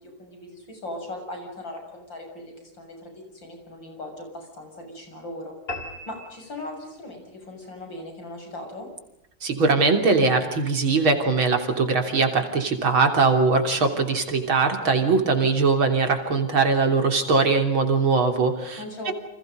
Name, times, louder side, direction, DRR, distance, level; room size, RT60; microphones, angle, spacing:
voice 1, 0.0-5.5 6.1-8.9 18.8-19.1, left 1 dB, 65° left, 3 dB, 7.8 m, -38 dB
sound 1, 5.7-7.2, left 2 dB, 25° left, 4.1 m, -37 dB
voice 2, 9.4-19.1, right 4 dB, 85° right, 5 dB, 4.1 m, -21 dB
29.5 x 26.5 x 5.3 m, 0.86 s
omnidirectional pair, 2.2 m